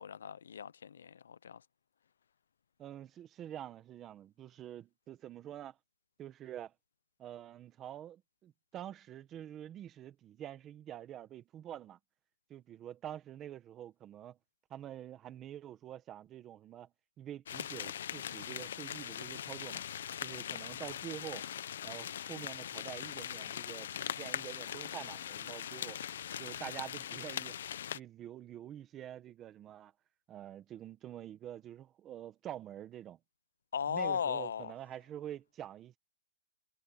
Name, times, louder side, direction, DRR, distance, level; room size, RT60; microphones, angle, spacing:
voice 1, 0.0-1.6 33.7-34.7, left 7 dB, 75° left, 0.7 m, -37 dB
voice 2, 2.8-5.8 6.2-6.7 7.2-12.0 12.5-14.4 14.7-16.9 17.2-19.8 20.2-21.5 21.8-26.0 26.4-27.5 27.9-29.9 30.3-33.2 33.9-36.0, right 11 dB, 15° right, 1.5 m, -47 dB
sound 1, 17.5-28.0, left 10 dB, 55° left, 1.0 m, -41 dB
hypercardioid pair, 170°, 0 cm